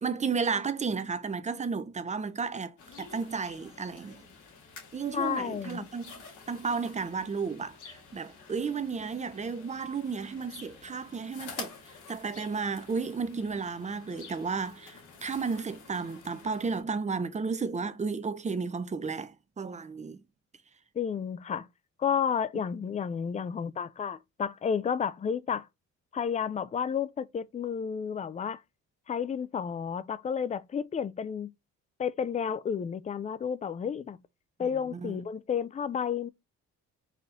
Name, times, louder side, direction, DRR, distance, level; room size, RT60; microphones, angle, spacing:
voice 1, 0.0-4.2 4.9-11.8 12.1-20.2 34.9-35.2, right 5 dB, 25° right, 0.6 m, -33 dB
sound 1, 2.8-16.8, left 5 dB, 80° left, 2.0 m, -49 dB
voice 2, 5.1-5.9 21.0-21.7 22.0-25.7 26.1-28.6 29.1-31.5 32.0-34.2 34.6-36.3, left 7 dB, 25° left, 0.3 m, -31 dB
4.2 x 2.7 x 3.5 m
cardioid pair, 90°, 30 cm